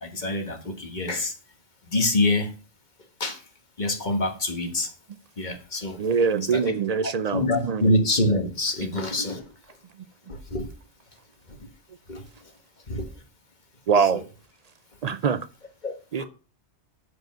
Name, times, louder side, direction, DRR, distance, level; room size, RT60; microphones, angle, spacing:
voice 1, 0.0-1.3 1.9-2.5 3.2-3.4 3.8-4.9 5.4-6.0 6.5-6.7 7.0-9.5 10.3-10.7 12.1-12.2 12.9-13.1 13.9-14.2 15.8-15.9 16.2-16.3, left 1 dB, 40° left, 1.5 m, -26 dB
voice 2, 6.0-7.9 13.9-14.2 15.0-15.4 16.1-16.2, right 6 dB, 60° right, 0.4 m, -23 dB
7.8 x 4.8 x 7.3 m
omnidirectional pair, 1.2 m